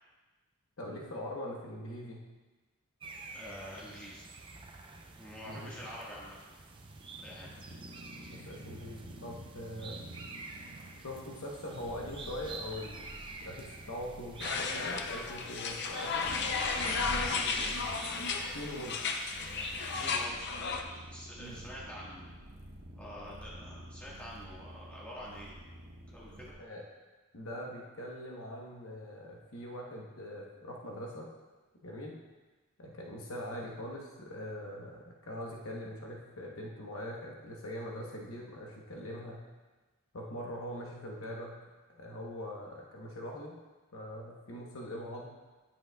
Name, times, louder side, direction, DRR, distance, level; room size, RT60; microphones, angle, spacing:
voice 1, 0.8-2.2 5.4-5.7 7.7-7.8 8.3-10.0 11.0-13.1 13.4-16.3 18.5-19.0 21.4-21.6 26.6-26.8 27.3-31.3 31.8-32.2 32.8-39.4 40.1-41.6 41.9-43.5 43.9-45.3, left 1 dB, 65° left, -2 dB, 1.0 m, -42 dB
sound 1, 3.0-20.3, right 3 dB, 25° right, 0.5 m, -48 dB
voice 2, 3.3-4.2 5.2-6.4 7.2-7.6 17.3-17.7 19.9-20.5 20.8-22.2 23.0-25.5 26.1-26.5, equal, 5° left, -7 dB, 1.5 m, -46 dB
sound 2, 6.9-26.5, right 1 dB, 60° right, 1.2 m, -48 dB
sound 3, 14.4-20.8, left 4 dB, 50° left, 0.5 m, -34 dB
8.9 x 7.5 x 2.3 m, 1.2 s
head